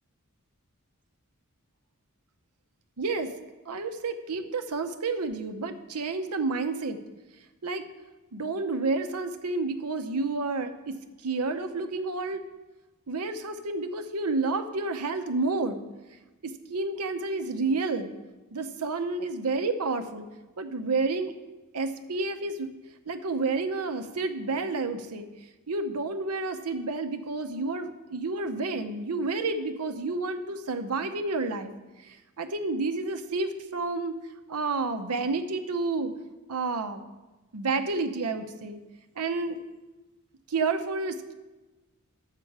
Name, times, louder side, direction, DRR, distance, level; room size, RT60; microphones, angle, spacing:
voice 1, 3.0-3.3 3.7-7.0 7.6-7.9 8.3-12.4 13.1-15.8 16.4-18.1 18.5-20.3 20.6-21.3 21.7-22.7 23.1-25.3 25.7-31.7 32.0-34.2 34.5-36.1 36.5-37.0 37.5-38.8 39.2-39.6 40.5-41.3, right 3 dB, 85° right, 8 dB, 0.8 m, -30 dB
10.5 x 7.5 x 4.8 m, 1.1 s
head